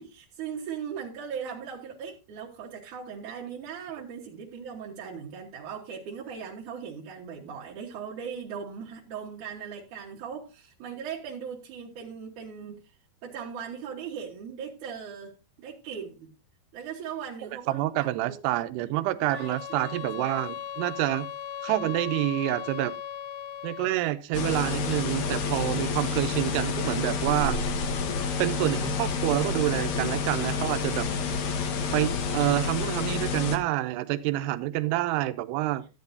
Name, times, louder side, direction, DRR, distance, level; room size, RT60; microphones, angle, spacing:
voice 1, 0.0-12.8 13.2-16.3 16.7-18.1 18.5-18.6 19.2-20.4, right 7 dB, 60° right, -4 dB, 2.4 m, -39 dB
voice 2, 17.7-21.3 21.6-23.0 23.6-27.6 28.4-31.1 31.9-35.8, right 16 dB, 85° right, 12 dB, 2.7 m, -27 dB
sound 1, 19.3-24.0, left 9 dB, 80° left, 2.3 m, -38 dB
sound 2, 24.3-33.6, left 5 dB, 65° left, 2.2 m, -29 dB
13.5 x 9.6 x 2.7 m, 0.28 s
omnidirectional pair, 4.7 m